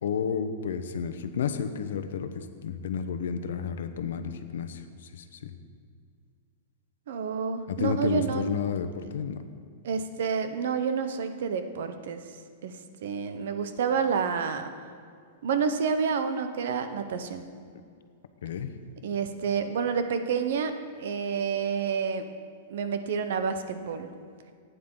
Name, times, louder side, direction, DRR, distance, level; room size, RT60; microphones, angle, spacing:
voice 1, 0.0-5.6 7.7-9.4 18.4-18.7, left 6 dB, 75° left, 9 dB, 0.9 m, -31 dB
voice 2, 7.1-8.4 9.8-12.2 12.6-12.7 13.0-14.7 15.4-17.5 19.0-22.2 22.7-24.1, right 6 dB, 60° right, 8 dB, 0.9 m, -29 dB
15.5 x 9.4 x 3.9 m, 2.2 s
supercardioid pair, 175°, 0 cm